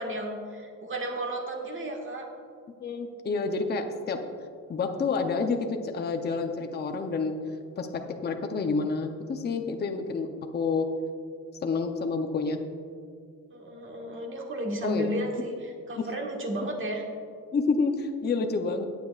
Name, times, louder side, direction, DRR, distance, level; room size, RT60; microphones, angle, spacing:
voice 1, 0.0-2.3 13.5-17.1, right 1 dB, 35° right, 0 dB, 1.7 m, -33 dB
voice 2, 2.8-4.2 4.7-7.3 7.8-10.3 10.5-10.9 11.6-12.6 14.8-15.1 15.9-16.1 16.6-16.7 17.5-18.8, left 4 dB, 30° left, 5 dB, 0.7 m, -29 dB
18.0 x 7.5 x 2.4 m, 2.2 s
cardioid pair, 135°, 33 cm